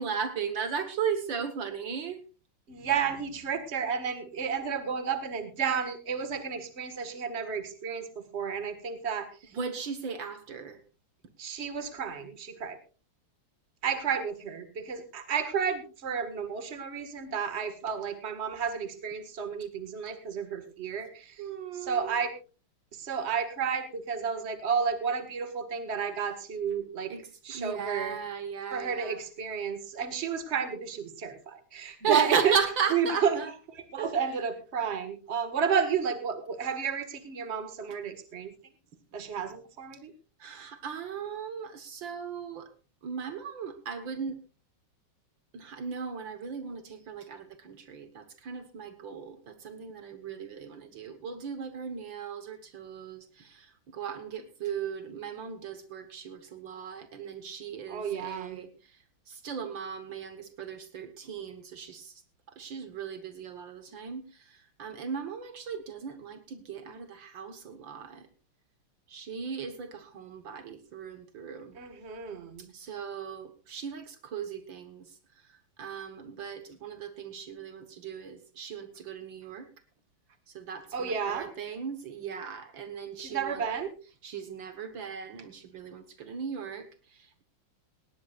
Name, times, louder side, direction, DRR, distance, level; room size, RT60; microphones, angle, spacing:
voice 1, 0.0-2.2 9.5-10.8 21.4-22.2 27.1-29.2 31.9-33.5 33.9-34.4 40.4-42.7 43.0-44.4 45.5-62.2 62.5-68.3 69.1-71.8 72.6-79.7 80.5-83.7 84.2-87.4, right 6 dB, 65° right, 9 dB, 2.0 m, -36 dB
voice 2, 2.7-9.3 11.4-12.8 13.8-21.4 21.8-22.3 22.9-27.1 27.5-28.2 28.7-32.5 32.9-33.4 33.9-38.5 39.1-40.1 57.9-58.6 71.8-72.7 80.9-81.5 83.2-83.9, right 6 dB, 35° right, 10 dB, 1.8 m, -31 dB
18.0 x 17.5 x 2.4 m, 0.34 s
omnidirectional pair, 2.3 m